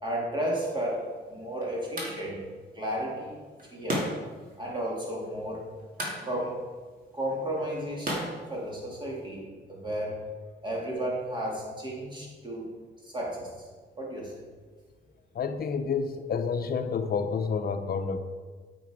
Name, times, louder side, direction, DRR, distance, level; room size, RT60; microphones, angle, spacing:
voice 1, 0.0-2.4 2.7-3.4 3.7-4.1 4.6-5.6 6.2-6.6 7.1-10.2 10.6-12.7 13.0-13.7 14.0-14.4, right 1 dB, 25° right, -3 dB, 3.0 m, -33 dB
sound 1, 0.7-9.3, right 1 dB, 45° right, 2.5 m, -39 dB
voice 2, 15.3-18.2, left 5 dB, 50° left, 8 dB, 0.8 m, -29 dB
8.9 x 6.2 x 4.7 m, 1.5 s
cardioid pair, 90°, 20 cm